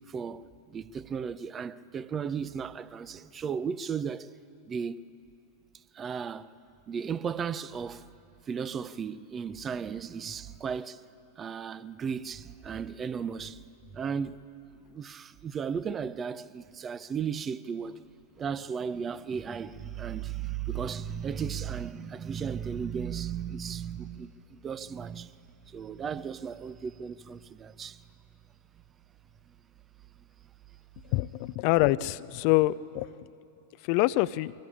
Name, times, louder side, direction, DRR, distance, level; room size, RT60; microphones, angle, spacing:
voice 1, 0.1-4.3 4.7-5.0 5.9-6.5 6.9-8.1 8.4-11.0 11.4-13.6 13.9-14.4 14.9-18.0 18.4-25.3 25.7-28.0, right 7 dB, 25° right, 0.6 m, -35 dB
voice 2, 31.1-33.1 33.8-34.5, left 18 dB, 50° left, 0.5 m, -25 dB
23.5 x 18.0 x 8.7 m
hypercardioid pair, 95°, 0 cm